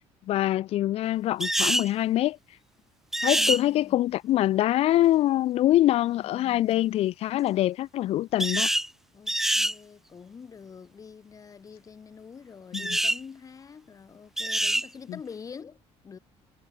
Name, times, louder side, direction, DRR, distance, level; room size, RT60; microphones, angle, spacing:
voice 1, 0.3-2.4 3.2-8.7 12.7-13.0, left 14 dB, 55° left, 0.6 m, -24 dB
sound 1, 1.4-1.9 3.1-3.6 8.4-8.9 9.3-9.7 12.7-13.2 14.4-14.9, right 1 dB, 5° right, 0.7 m, -25 dB
voice 2, 3.3-4.0 5.9-7.0 9.1-16.2, left 6 dB, 30° left, 5.8 m, -46 dB
cardioid pair, 150°, 12 cm